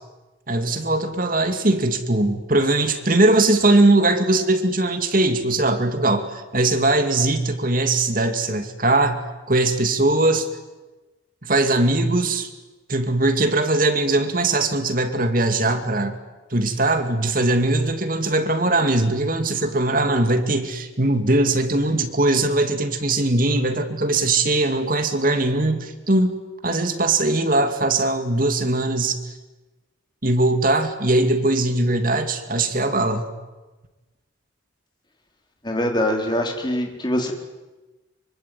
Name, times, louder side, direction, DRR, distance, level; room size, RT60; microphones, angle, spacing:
voice 1, 0.5-10.5 11.4-12.5 12.9-16.2 16.5-26.4 26.6-29.2 30.2-33.3, right 2 dB, 45° right, 7 dB, 2.5 m, -20 dB
voice 2, 35.6-37.3, left 1 dB, 25° left, 2 dB, 4.2 m, -23 dB
25.5 x 24.5 x 9.5 m, 1.2 s
head